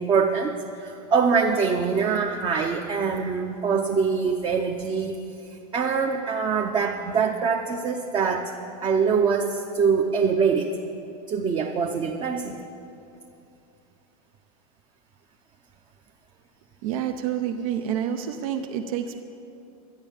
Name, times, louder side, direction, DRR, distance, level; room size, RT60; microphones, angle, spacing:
voice 1, 0.0-5.2 5.7-8.5 8.8-10.8 11.3-12.6, right 5 dB, 25° right, 2 dB, 0.7 m, -24 dB
voice 2, 16.8-19.2, right 9 dB, 70° right, 6 dB, 0.8 m, -28 dB
12.0 x 10.0 x 7.1 m, 2.7 s
supercardioid pair, 145°, 19 cm